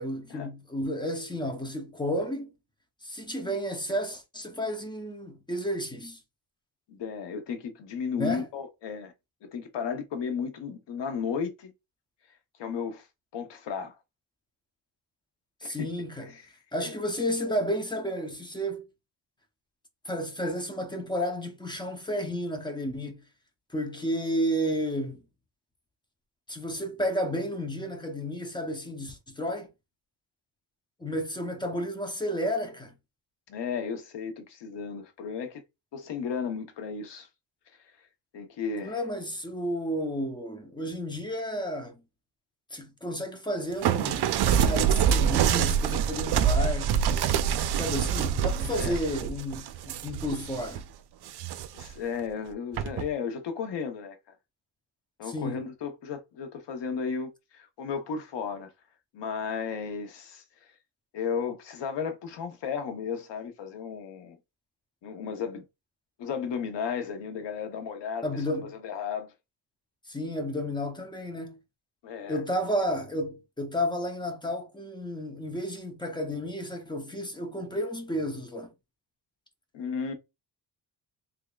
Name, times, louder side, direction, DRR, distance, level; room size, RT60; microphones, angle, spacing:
voice 1, 0.0-2.5 3.0-6.2 8.2-8.4 15.6-16.3 16.7-18.8 20.0-23.2 23.7-25.2 26.5-29.7 31.0-32.9 38.7-42.0 42.7-47.0 47.7-50.9 55.2-55.7 68.2-68.8 70.1-71.6 72.3-78.7, equal, 10° left, 0.7 m, -32 dB
voice 2, 6.9-9.1 9.4-11.7 12.6-13.1 13.3-13.9 15.6-15.9 16.8-16.9 33.5-35.6 35.9-37.3 38.3-39.0 48.7-49.0 51.7-54.2 55.2-58.7 59.1-60.4 61.1-64.4 65.0-65.6 66.2-68.3 68.8-69.3 72.0-72.4 79.7-80.1, left 6 dB, 85° left, 0.9 m, -34 dB
sound 1, 43.8-50.8 51.3-51.9 52.8-53.1, right 8 dB, 70° right, 0.5 m, -25 dB
3.5 x 3.4 x 2.3 m
cardioid pair, 125°, 41 cm